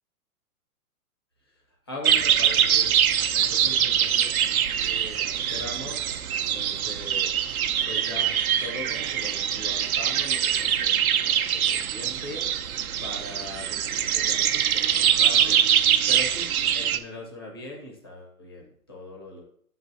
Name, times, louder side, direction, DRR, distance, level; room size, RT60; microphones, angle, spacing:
voice 1, 1.9-2.9 3.3-6.0 6.5-7.3 7.9-12.5 13.0-15.6 16.1-19.4, left 1 dB, 15° left, -1 dB, 0.6 m, -40 dB
sound 1, 2.0-17.0, right 9 dB, 65° right, 0.6 m, -23 dB
5.7 x 4.0 x 5.6 m, 0.63 s
hypercardioid pair, 180°, 46 cm